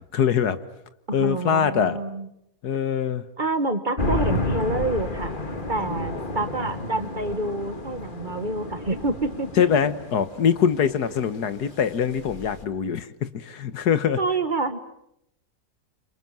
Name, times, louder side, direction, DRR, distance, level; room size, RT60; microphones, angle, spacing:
voice 1, 0.1-0.6 1.1-2.0 2.6-3.2 9.6-14.2, left 7 dB, 90° left, 13 dB, 1.8 m, -23 dB
voice 2, 1.1-2.3 3.4-5.3 5.7-9.5 14.2-14.8, right 2 dB, 30° right, 10 dB, 1.5 m, -27 dB
sound 1, 4.0-12.6, left 2 dB, 30° left, 2.1 m, -31 dB
29.0 x 25.5 x 7.7 m, 0.79 s
omnidirectional pair, 1.7 m